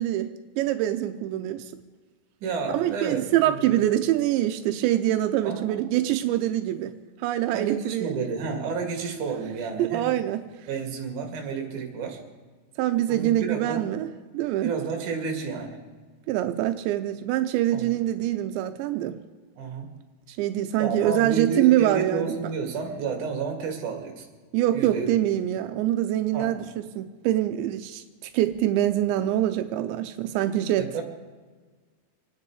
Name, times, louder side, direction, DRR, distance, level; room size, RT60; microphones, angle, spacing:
voice 1, 0.0-1.7 2.7-6.9 7.2-8.2 9.8-10.5 12.8-14.1 14.3-14.7 16.3-19.2 20.3-22.5 24.5-30.9, right 13 dB, 85° right, 8 dB, 3.0 m, -25 dB
voice 2, 2.4-3.8 5.4-5.8 7.5-10.1 10.7-12.2 13.1-13.9 14.6-15.8 17.7-17.9 19.6-19.9 20.8-24.2 24.7-25.1 26.3-26.5 30.8-31.0, right 5 dB, 50° right, 3 dB, 3.4 m, -31 dB
27.5 x 9.7 x 4.8 m, 1.4 s
omnidirectional pair, 5.1 m